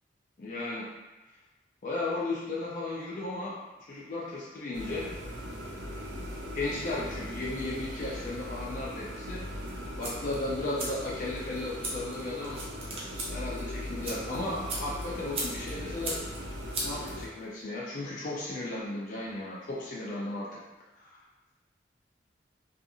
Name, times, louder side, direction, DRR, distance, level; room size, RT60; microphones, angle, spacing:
voice 1, 0.4-0.9 1.8-5.1 6.5-12.6 13.3-16.2 16.8-20.6 21.0-21.2, left 2 dB, 45° left, -5 dB, 0.4 m, -35 dB
sound 1, 4.7-17.3, equal, 85° right, 0.5 m, -39 dB
sound 2, 9.6-17.6, right 2 dB, 30° right, 0.5 m, -40 dB
2.7 x 2.4 x 2.6 m, 1.1 s
head